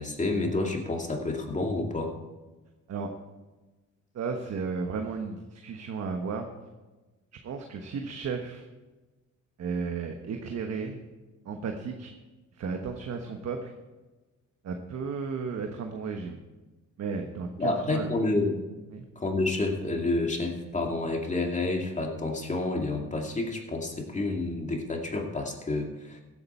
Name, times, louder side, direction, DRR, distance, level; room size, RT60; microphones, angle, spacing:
voice 1, 0.0-2.1 17.6-18.6 19.2-26.2, left 2 dB, 25° left, 1 dB, 2.4 m, -29 dB
voice 2, 4.1-6.5 7.4-8.7 9.6-11.0 11.4-12.1 12.5-13.7 14.6-16.4 17.0-18.1 18.9-19.0, right 5 dB, 60° right, 4 dB, 1.3 m, -34 dB
15.5 x 8.7 x 4.5 m, 1.2 s
cardioid pair, 90°, 30 cm